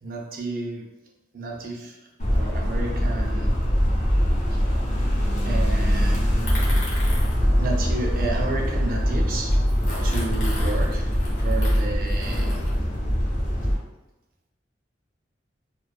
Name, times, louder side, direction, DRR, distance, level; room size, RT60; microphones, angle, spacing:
voice 1, 0.0-0.9 1.3-3.6 4.5-4.6 5.4-6.2 6.6-6.8 7.6-9.6 10.0-12.7, right 2 dB, 50° right, 0 dB, 0.4 m, -32 dB
sound 1, 2.2-13.7, equal, 40° left, 0.6 m, -22 dB
sound 2, 6.4-9.0 9.5-12.8, left 1 dB, 70° left, 0.9 m, -36 dB
2.4 x 2.3 x 2.3 m, 0.99 s
head